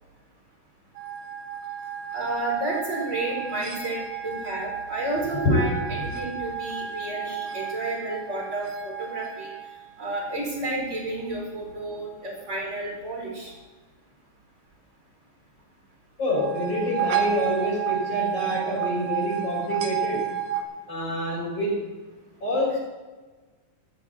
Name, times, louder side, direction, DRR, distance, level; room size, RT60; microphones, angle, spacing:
sound 1, 1.0-10.8 16.2-20.6, right 9 dB, 90° right, 3.2 m, -32 dB
voice 1, 2.1-5.7 6.0-9.5 10.0-13.5, right 2 dB, 20° right, -2 dB, 4.8 m, -31 dB
voice 2, 5.3-6.1 16.2-20.3 20.9-21.8 22.4-22.8, left 1 dB, 45° left, -5 dB, 6.4 m, -26 dB
16.5 x 12.5 x 4.4 m, 1.3 s
omnidirectional pair, 4.0 m